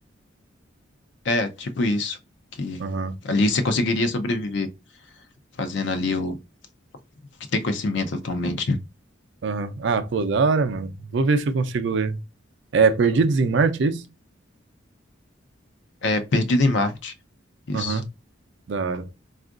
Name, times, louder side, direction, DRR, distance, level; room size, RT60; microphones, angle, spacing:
voice 1, 1.2-2.2 2.6-2.8 3.2-4.7 5.6-6.4 7.5-8.8 16.0-17.1 17.7-18.0, left 2 dB, 65° left, 0.5 m, -24 dB
voice 2, 2.8-3.1 9.4-12.2 12.7-14.0 17.7-18.0 18.7-19.1, right 4 dB, 65° right, 0.4 m, -22 dB
3.6 x 2.4 x 2.3 m
head